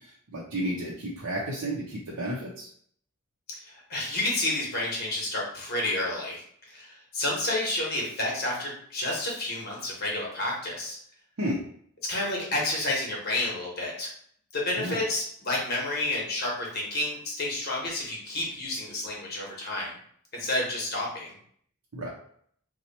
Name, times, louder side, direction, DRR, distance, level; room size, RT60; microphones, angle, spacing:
voice 1, 0.3-2.7 11.4-11.6 14.8-15.0 21.9-22.1, right 1 dB, 85° right, -5 dB, 0.7 m, -32 dB
voice 2, 3.5-11.0 12.0-14.1 14.5-19.9 20.3-21.3, left 2 dB, 45° left, -3 dB, 1.1 m, -30 dB
2.9 x 2.3 x 4.1 m, 0.62 s
head